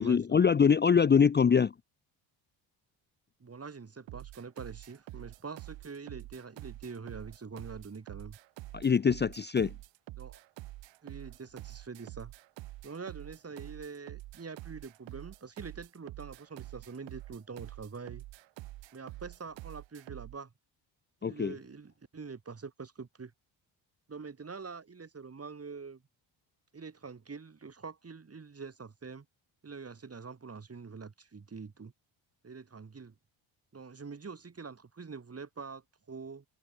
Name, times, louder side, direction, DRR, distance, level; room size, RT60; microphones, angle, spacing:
voice 1, 0.0-1.7 8.7-9.7 21.2-21.5, left 6 dB, 25° left, 0.6 m, -24 dB
voice 2, 3.4-8.4 10.2-10.4 11.0-12.3 12.8-18.2 18.9-20.5 21.2-23.3 24.1-26.0 26.7-29.3 29.6-31.9 32.4-33.1 33.7-36.5, right 5 dB, 30° right, 3.6 m, -45 dB
sound 1, 4.1-20.4, right 17 dB, 75° right, 0.8 m, -47 dB
cardioid pair, 75°, 45 cm